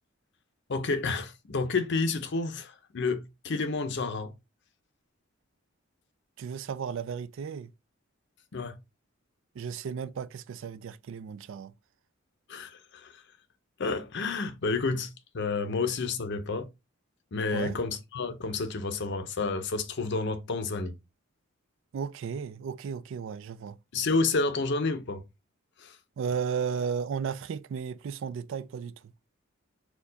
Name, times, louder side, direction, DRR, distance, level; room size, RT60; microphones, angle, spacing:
voice 1, 0.7-4.3 8.5-8.8 12.5-13.2 13.8-16.7 17.3-20.9 23.9-25.2 25.8-26.0, left 3 dB, 55° left, 0.6 m, -30 dB
voice 2, 6.4-7.7 9.6-11.7 17.5-17.8 21.9-23.8 26.2-28.9, right 6 dB, 65° right, 0.3 m, -34 dB
4.4 x 2.3 x 3.9 m
head